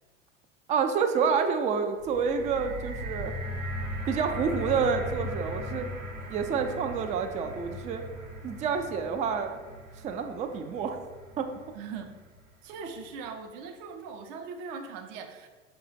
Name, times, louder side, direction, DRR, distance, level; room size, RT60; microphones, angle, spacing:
voice 1, 0.7-3.3 4.1-5.9 6.3-8.0 8.4-9.6 10.0-11.0 11.4-11.5 12.8-12.9, right 6 dB, 20° right, 6 dB, 0.3 m, -28 dB
sound 1, 2.0-12.2 12.9-13.0, equal, 85° right, 1.0 m, -38 dB
voice 2, 11.7-12.1 12.6-15.5, right 5 dB, 50° right, 5 dB, 0.7 m, -40 dB
5.4 x 2.3 x 3.9 m, 1.3 s
figure-of-eight pair, 75°, 37 cm